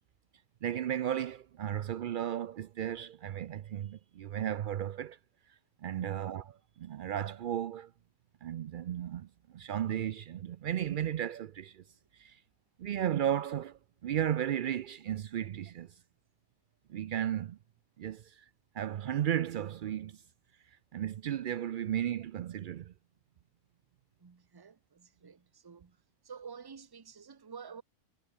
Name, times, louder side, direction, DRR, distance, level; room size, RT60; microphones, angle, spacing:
voice 1, 0.6-5.2 5.8-6.5 6.8-7.9 8.4-11.8 12.1-12.4 12.8-15.9 16.9-17.6 18.0-18.5 18.7-20.2 20.9-22.9, right 10 dB, 90° right, 0.4 m, -34 dB
voice 2, 24.2-27.8, right 6 dB, 25° right, 0.5 m, -50 dB
omnidirectional pair, 1.4 m